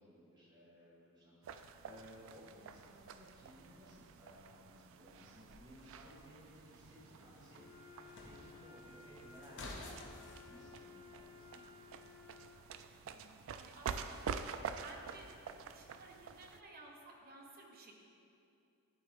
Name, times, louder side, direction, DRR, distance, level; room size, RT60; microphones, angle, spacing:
voice 1, 0.0-7.9 8.2-9.7 10.0-12.1, equal, 20° right, -8 dB, 1.5 m, -59 dB
sound 1, 1.4-16.6, right 6 dB, 60° right, 0.3 m, -48 dB
sound 2, 5.4-10.5, left 2 dB, 55° left, 1.0 m, -54 dB
Wind instrument woodwind instrument, 7.5-12.7, left 6 dB, 30° left, 0.7 m, -58 dB
voice 2, 13.0-14.4 14.8-15.3 15.7-17.9, right 2 dB, 45° right, 0 dB, 1.0 m, -56 dB
11.0 x 4.6 x 3.6 m, 2.6 s
head